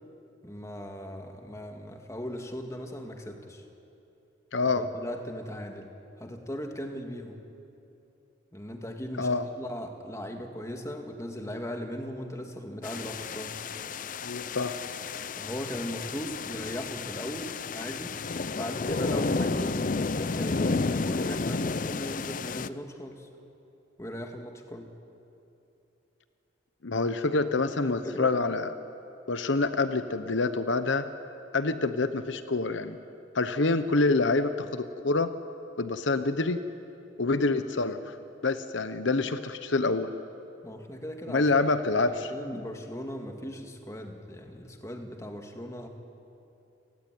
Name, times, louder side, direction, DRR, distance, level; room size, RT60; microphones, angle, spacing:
voice 1, 0.4-3.6 4.6-5.9 6.2-7.4 8.5-13.6 15.4-18.2 18.5-19.8 20.2-23.3 24.0-24.9 27.8-28.3 40.6-41.8 42.0-45.9, equal, 15° left, 4 dB, 2.0 m, -38 dB
voice 2, 4.5-4.9 9.2-9.4 14.2-14.8 26.8-28.7 29.3-31.1 31.5-33.0 33.3-35.3 35.8-36.6 37.2-38.1 38.4-40.1 41.3-42.3, left 3 dB, 70° left, 11 dB, 1.0 m, -26 dB
sound 1, 12.8-22.7, left 3 dB, 40° left, 0.5 m, -32 dB
29.0 x 19.0 x 9.4 m, 2.8 s
head